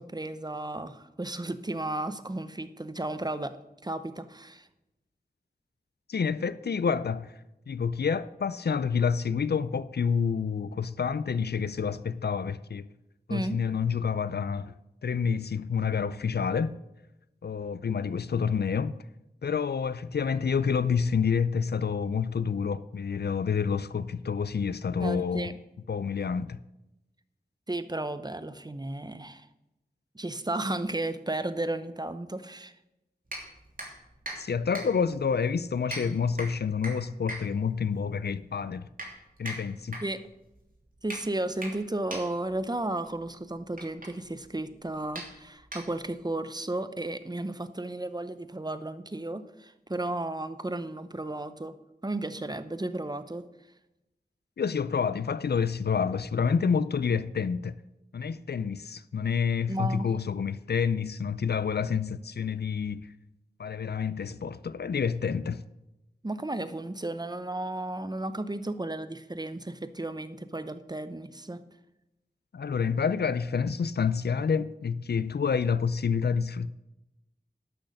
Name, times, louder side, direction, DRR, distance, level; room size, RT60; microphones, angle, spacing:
voice 1, 0.0-3.6 3.8-4.7 13.3-13.6 25.0-25.5 27.7-29.5 30.1-32.7 40.0-40.2 41.0-51.7 52.0-53.4 59.7-60.1 66.2-71.6, right 2 dB, 25° right, 0.7 m, -34 dB
voice 2, 6.1-7.3 7.7-12.8 13.3-14.7 15.0-16.7 17.4-18.9 19.4-25.5 25.9-26.6 34.4-38.9 39.4-40.0 54.6-57.8 58.1-63.1 63.6-65.6 72.5-76.7, left 6 dB, 75° left, 0.4 m, -28 dB
sound 1, 33.3-46.3, right 1 dB, 55° right, 2.9 m, -43 dB
11.5 x 6.5 x 6.5 m
wide cardioid pair, 50°, 17 cm